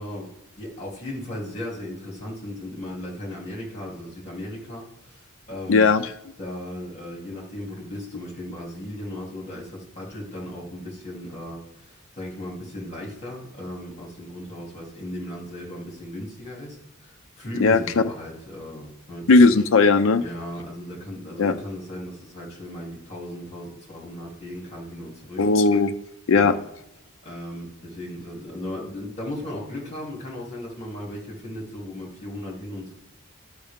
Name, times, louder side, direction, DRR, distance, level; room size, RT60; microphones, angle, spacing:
voice 1, 0.0-5.9 6.4-19.5 20.2-25.4 26.3-26.6 27.2-32.9, left 1 dB, 30° left, -3 dB, 2.8 m, -36 dB
voice 2, 5.7-6.0 17.6-17.8 19.3-20.2 21.4-21.5 25.4-25.9 26.3-26.6, left 3 dB, 60° left, 8 dB, 0.5 m, -17 dB
13.0 x 5.5 x 3.6 m, 0.86 s
head